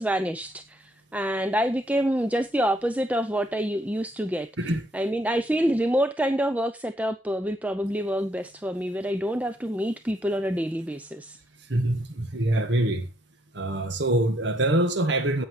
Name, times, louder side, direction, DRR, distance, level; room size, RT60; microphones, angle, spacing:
voice 1, 0.0-4.5 4.9-11.4, equal, 10° right, 0.5 m, -27 dB
voice 2, 4.6-4.9 11.6-13.1 13.5-15.4, right 1 dB, 65° right, 1.5 m, -25 dB
15.0 x 9.0 x 3.2 m
head